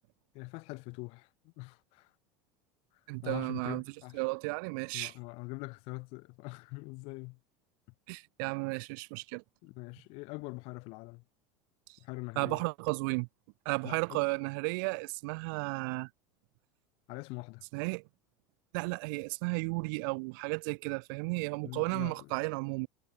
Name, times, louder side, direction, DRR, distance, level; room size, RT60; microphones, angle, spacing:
voice 1, 0.3-2.1 3.2-4.2 4.9-7.4 9.6-11.2 12.0-12.6 13.8-14.2 17.1-17.6 21.6-22.3, left 27 dB, 60° left, 3.7 m, -43 dB
voice 2, 3.1-3.8 4.1-5.1 8.1-9.4 11.9-12.0 12.4-13.3 13.6-16.1 17.7-18.0 18.7-22.9, right 31 dB, 70° right, 2.9 m, -34 dB
supercardioid pair, 135°, 11 cm